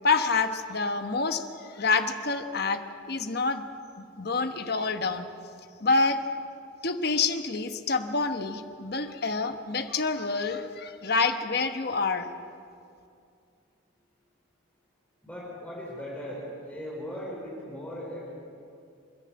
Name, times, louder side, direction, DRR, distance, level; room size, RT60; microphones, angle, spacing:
voice 1, 0.0-2.8 3.1-3.6 4.0-5.3 5.8-6.2 6.8-12.3, left 4 dB, 50° left, 8 dB, 1.1 m, -27 dB
voice 2, 15.2-18.3, equal, 5° left, -5 dB, 4.6 m, -38 dB
27.5 x 10.5 x 8.8 m, 2.5 s
head